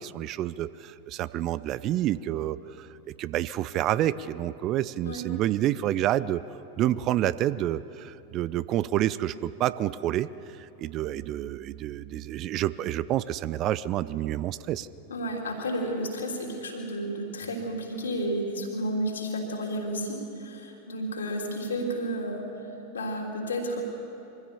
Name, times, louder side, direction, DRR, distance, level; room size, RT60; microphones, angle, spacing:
voice 1, 0.0-2.9 3.2-6.4 6.8-10.3 10.6-14.9, right 13 dB, 35° right, 17 dB, 0.4 m, -28 dB
voice 2, 15.1-22.4 22.9-23.8, equal, 70° left, 1 dB, 3.2 m, -31 dB
24.0 x 15.5 x 7.0 m, 2.9 s
figure-of-eight pair, 90°, 0 cm